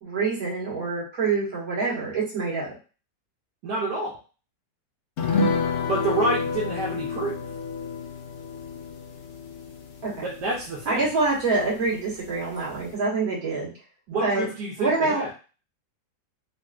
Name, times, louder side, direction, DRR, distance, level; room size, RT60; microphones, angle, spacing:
voice 1, 0.0-2.8 10.0-10.3 10.9-13.7 14.2-14.5 14.8-15.2, right 3 dB, 55° right, -6 dB, 2.0 m, -26 dB
voice 2, 3.6-4.1 5.9-7.4 10.2-11.0 14.1-15.3, right 2 dB, 80° right, -4 dB, 1.4 m, -28 dB
sound 1, 5.2-12.0 12.3-12.4 12.7-12.9, left 4 dB, 85° left, 0.6 m, -30 dB
3.9 x 2.6 x 2.3 m, 0.35 s
omnidirectional pair, 1.8 m